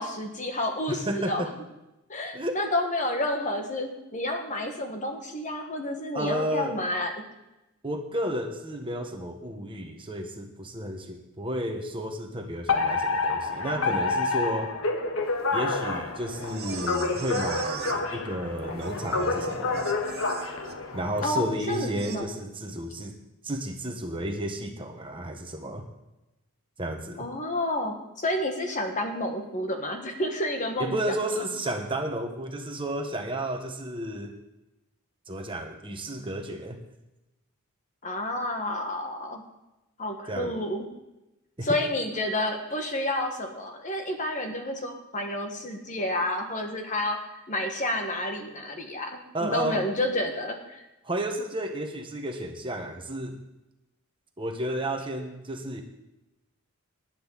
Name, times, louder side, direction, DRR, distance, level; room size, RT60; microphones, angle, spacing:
voice 1, 0.0-1.5 2.1-7.1 21.2-22.3 27.2-31.2 38.0-39.4 40.0-40.9 41.6-50.8, left 1 dB, 35° left, 4 dB, 1.7 m, -30 dB
voice 2, 0.9-1.5 2.3-2.6 6.1-6.8 7.8-14.7 15.5-19.9 20.9-23.2 23.4-25.8 26.8-27.3 30.8-34.4 35.3-36.8 40.3-40.6 41.6-41.7 49.3-49.8 51.0-53.4 54.4-55.8, right 1 dB, 25° right, 3 dB, 1.4 m, -32 dB
Alarm, 12.7-21.3, left 3 dB, 65° left, 1.4 m, -28 dB
sound 1, 15.2-22.2, right 6 dB, 45° right, 1.1 m, -42 dB
19.5 x 10.5 x 4.1 m, 0.96 s
head